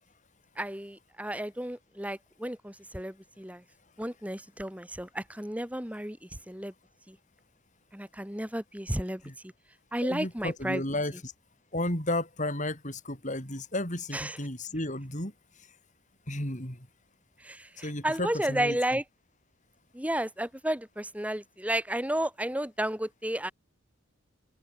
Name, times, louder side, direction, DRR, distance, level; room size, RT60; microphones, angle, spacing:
voice 1, 0.6-3.6 4.0-6.7 7.1-7.2 7.9-9.5 9.9-10.8 14.1-14.4 17.4-19.0 19.9-23.5, right 1 dB, 5° right, 2.4 m, -32 dB
voice 2, 10.0-11.3 11.7-15.3 15.6-15.7 16.3-16.9 17.8-18.8, left 1 dB, 35° left, 7.2 m, -33 dB
head